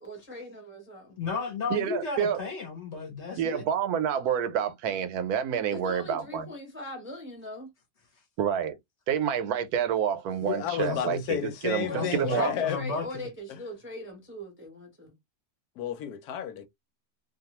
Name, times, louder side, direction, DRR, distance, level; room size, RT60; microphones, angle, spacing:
voice 1, 0.0-1.2 5.7-7.7 11.8-15.1, left 1 dB, 15° right, 0.5 m, -40 dB
voice 2, 1.2-3.6 10.8-11.2 11.9-13.3, left 4 dB, 55° left, 1.0 m, -33 dB
voice 3, 1.7-2.4 3.4-6.5 8.4-8.8 9.1-12.5, right 8 dB, 80° right, 1.1 m, -28 dB
voice 4, 10.4-12.8 13.5-13.6 15.8-16.7, left 9 dB, 80° left, 1.1 m, -32 dB
2.6 x 2.3 x 2.8 m
omnidirectional pair, 1.6 m